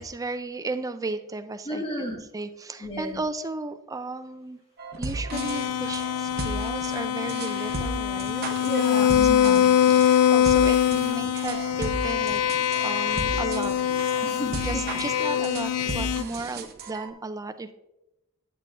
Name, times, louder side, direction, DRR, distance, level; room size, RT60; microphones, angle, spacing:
voice 1, 0.0-4.6 5.0-8.5 9.0-12.4 12.8-13.8 14.6-17.7, right 3 dB, 15° right, 9 dB, 0.4 m, -35 dB
voice 2, 1.7-2.2 2.8-3.2 8.6-9.7 14.2-14.8, equal, 25° left, -1 dB, 1.9 m, -32 dB
sound 1, 4.8-17.1, right 3 dB, 45° right, 0.8 m, -35 dB
sound 2, 5.3-16.2, left 9 dB, 80° left, 0.3 m, -23 dB
8.9 x 8.5 x 2.5 m, 0.90 s
head